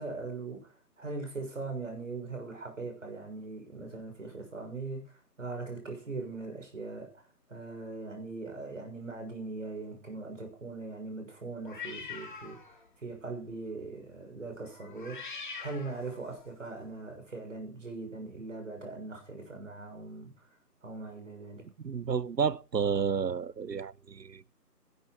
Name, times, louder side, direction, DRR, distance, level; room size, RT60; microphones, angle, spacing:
voice 1, 0.0-7.1 7.5-12.6 13.0-15.2 15.6-20.3 20.8-21.6, right 3 dB, 50° right, 6.5 m, -40 dB
sound 1, 11.6-12.9 13.2-13.5 14.7-16.5, left 5 dB, 30° left, 2.5 m, -44 dB
voice 2, 21.8-24.5, right 6 dB, 85° right, 0.9 m, -31 dB
13.0 x 12.0 x 5.3 m
figure-of-eight pair, 165°, 49 cm